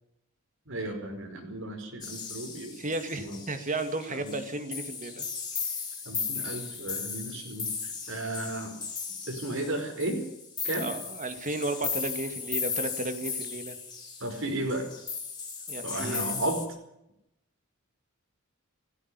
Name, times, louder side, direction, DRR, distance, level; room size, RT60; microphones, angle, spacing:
voice 1, 0.7-2.7 3.1-3.4 4.1-4.4 6.0-8.8 9.3-10.2 10.6-10.9 14.2-14.8 15.8-16.6, right 1 dB, 65° right, 5 dB, 5.2 m, -34 dB
sound 1, 2.0-16.7, left 5 dB, 20° left, 4.3 m, -36 dB
voice 2, 2.7-5.3 10.8-13.8 15.7-16.4, right 2 dB, 40° right, 8 dB, 2.5 m, -34 dB
17.5 x 16.0 x 9.9 m, 0.83 s
head